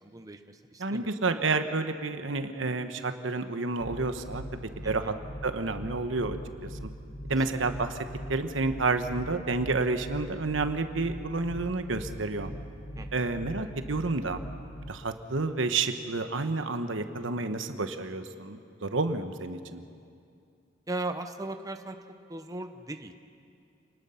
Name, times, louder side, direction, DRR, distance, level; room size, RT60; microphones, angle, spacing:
voice 1, 0.0-1.1 4.8-5.1 7.5-7.6 13.0-13.3 20.9-22.0 22.3-23.2, right 2 dB, 20° right, 6 dB, 0.9 m, -38 dB
voice 2, 0.8-5.1 5.4-6.4 6.6-6.9 7.3-12.5 13.1-14.4 14.9-19.8, right 3 dB, 85° right, 8 dB, 1.2 m, -30 dB
sound 1, 3.8-14.9, equal, 40° left, 1.6 m, -41 dB
28.0 x 20.0 x 5.7 m, 2.4 s
head